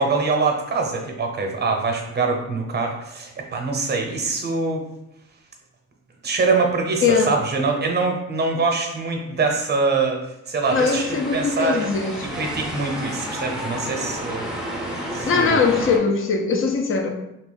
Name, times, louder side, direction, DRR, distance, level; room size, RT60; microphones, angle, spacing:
voice 1, 0.0-4.8 6.2-10.2 10.5-14.5 15.1-15.7, right 3 dB, 35° right, 2 dB, 0.8 m, -24 dB
voice 2, 7.0-7.3 10.7-12.3 15.3-17.1, left 5 dB, 45° left, 4 dB, 0.6 m, -21 dB
sound 1, 10.6-16.0, equal, ahead, 0.6 m, -31 dB
2.8 x 2.4 x 3.8 m, 0.86 s
cardioid pair, 90°, 30 cm